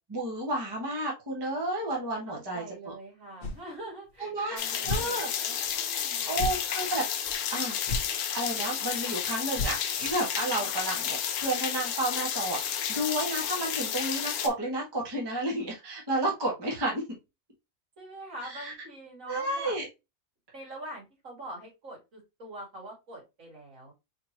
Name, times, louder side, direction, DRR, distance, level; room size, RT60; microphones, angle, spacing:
voice 1, 0.1-2.9 4.2-4.6 4.9-5.3 6.3-8.0 8.3-17.0 18.5-18.7 19.3-19.9, right 1 dB, 20° right, -2 dB, 1.1 m, -31 dB
voice 2, 2.3-6.5 10.5-10.8 18.0-19.8 20.5-23.9, right 1 dB, 65° right, -3 dB, 2.5 m, -44 dB
sound 1, 3.4-3.7 4.1-4.2 4.8-5.1 5.7-5.8 6.3-6.7 7.3-7.4 7.9-8.1 8.5-8.6 8.9-9.0 9.5-10.1, left 2 dB, 50° left, 0.8 m, -32 dB
sound 2, 4.6-14.5, left 9 dB, 85° left, 1.1 m, -31 dB
4.2 x 3.1 x 2.8 m, 0.24 s
omnidirectional pair, 1.5 m